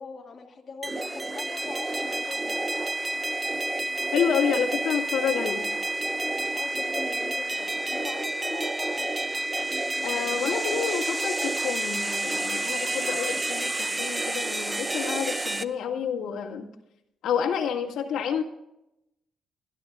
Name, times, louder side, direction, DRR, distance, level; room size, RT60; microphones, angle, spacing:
voice 1, 0.0-2.9 6.5-9.1, left 4 dB, 35° left, 0 dB, 2.0 m, -42 dB
sound 1, 0.8-15.6, right 2 dB, 15° right, 0.7 m, -29 dB
voice 2, 4.1-5.6 10.0-16.7 17.2-18.4, left 7 dB, 90° left, 0 dB, 1.9 m, -29 dB
28.5 x 11.5 x 2.4 m, 0.85 s
cardioid pair, 140°, 0 cm